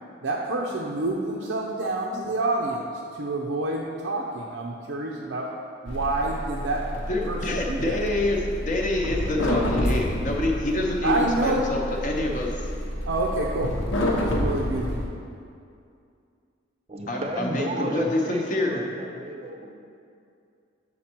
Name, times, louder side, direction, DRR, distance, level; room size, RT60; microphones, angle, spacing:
voice 1, 0.2-2.8 3.1-5.5 5.8-8.0 11.0-11.6 13.0-13.7 14.1-15.0, right 2 dB, 90° right, -3 dB, 0.6 m, -28 dB
sound 1, 5.9-15.0, left 1 dB, 85° left, 0.9 m, -29 dB
voice 2, 7.1-12.7 17.1-18.8, left 2 dB, 40° left, 0 dB, 0.7 m, -27 dB
voice 3, 16.9-19.7, right 1 dB, 30° right, 3 dB, 0.5 m, -33 dB
7.4 x 4.2 x 4.4 m, 2.4 s
head